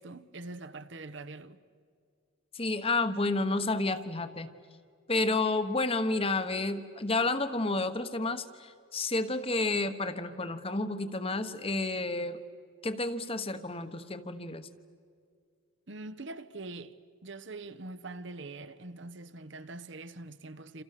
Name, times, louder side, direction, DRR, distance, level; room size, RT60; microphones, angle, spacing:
voice 1, 0.0-1.6 15.9-16.9 17.2-20.8, right 2 dB, 65° right, 1.1 m, -43 dB
voice 2, 2.5-4.5 5.1-12.4 12.8-14.7, left 2 dB, 30° left, 1.2 m, -30 dB
29.0 x 28.0 x 6.8 m
head